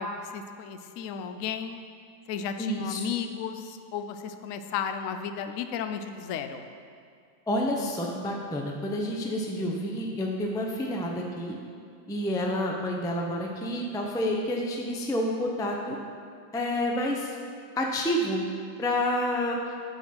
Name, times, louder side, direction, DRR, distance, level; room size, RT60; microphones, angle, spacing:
voice 1, 0.0-1.8 2.3-6.6, left 7 dB, 75° left, 8 dB, 0.7 m, -34 dB
voice 2, 2.6-3.1 7.5-11.6 12.1-16.0 16.5-17.3 17.8-18.5 18.8-19.7, left 1 dB, 5° left, 0 dB, 0.4 m, -29 dB
9.1 x 7.1 x 6.1 m, 2.3 s
omnidirectional pair, 2.1 m